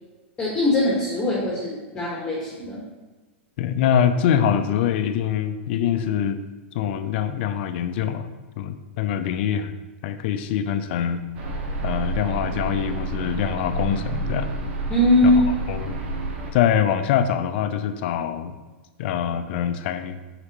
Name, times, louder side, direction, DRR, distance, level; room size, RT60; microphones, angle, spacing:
voice 1, 0.4-2.8 14.9-15.4, left 1 dB, 15° left, -5 dB, 1.4 m, -21 dB
voice 2, 3.6-6.4 6.7-8.3 8.6-9.7 10.0-11.2 11.8-14.5 15.7-16.0 16.5-18.5 19.0-20.2, left 9 dB, 55° left, 10 dB, 0.5 m, -24 dB
sound 1, 11.3-16.5, right 2 dB, 60° right, 1.1 m, -29 dB
6.4 x 5.0 x 3.0 m, 1.2 s
hypercardioid pair, 130°, 7 cm